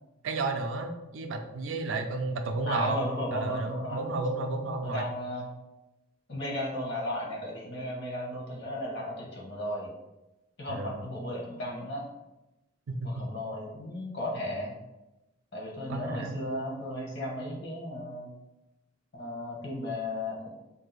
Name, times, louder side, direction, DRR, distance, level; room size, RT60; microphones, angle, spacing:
voice 1, 0.2-3.0 3.3-5.1 10.7-11.0 12.9-13.1 15.9-16.4, right 3 dB, 65° right, 6 dB, 0.4 m, -32 dB
voice 2, 2.7-4.1 4.8-5.5 6.3-9.9 10.6-12.0 13.0-14.7 15.5-18.3 19.1-20.5, left 1 dB, 55° left, -2 dB, 0.9 m, -35 dB
2.7 x 2.4 x 4.0 m, 0.99 s
head